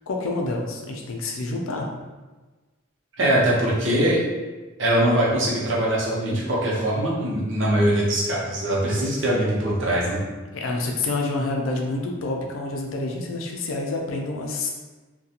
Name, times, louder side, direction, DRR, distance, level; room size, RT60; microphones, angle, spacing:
voice 1, 0.1-1.9 10.5-14.7, left 2 dB, 75° left, 1 dB, 0.4 m, -28 dB
voice 2, 3.2-4.3 4.8-10.2, right 1 dB, 60° right, -5 dB, 0.7 m, -22 dB
2.4 x 2.2 x 2.8 m, 1.3 s
head